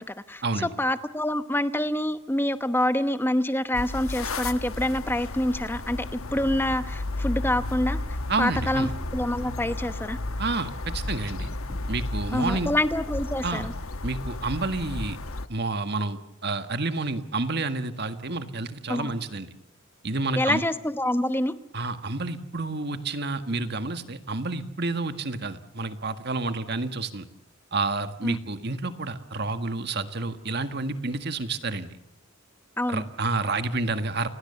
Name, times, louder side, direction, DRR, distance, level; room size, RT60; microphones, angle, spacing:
voice 1, 0.0-10.2 12.3-13.7 18.9-19.1 20.4-21.5 28.2-28.4 32.8-33.0, left 1 dB, 10° left, 12 dB, 0.9 m, -26 dB
running up wooden stairs, 3.4-13.7, equal, 15° right, 6.8 m, -54 dB
sound 1, 3.7-15.5, left 2 dB, 75° left, 1.2 m, -33 dB
voice 2, 8.3-8.9 10.4-11.5 11.9-12.7 13.4-13.7 14.0-15.2 15.5-19.5 20.0-20.6 21.7-27.2 27.7-31.9 32.9-34.3, right 3 dB, 50° right, 9 dB, 1.7 m, -29 dB
30.0 x 20.0 x 7.0 m, 0.76 s
head